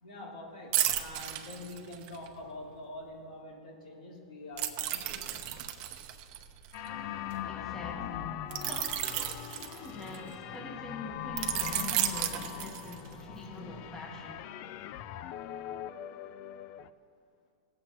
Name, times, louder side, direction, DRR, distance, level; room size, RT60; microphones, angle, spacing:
voice 1, 0.0-5.4, left 1 dB, 75° left, -2 dB, 2.8 m, -45 dB
sound 1, 0.7-2.3 4.6-7.3 8.5-10.3 11.4-13.2 13.6-13.8, right 12 dB, 40° right, 0.8 m, -33 dB
sound 2, 6.7-16.9, left 11 dB, 40° left, 0.4 m, -41 dB
voice 2, 6.8-14.5, left 2 dB, 15° left, 0 dB, 1.3 m, -44 dB
17.5 x 7.7 x 3.0 m, 2.3 s
hypercardioid pair, 140°, 4 cm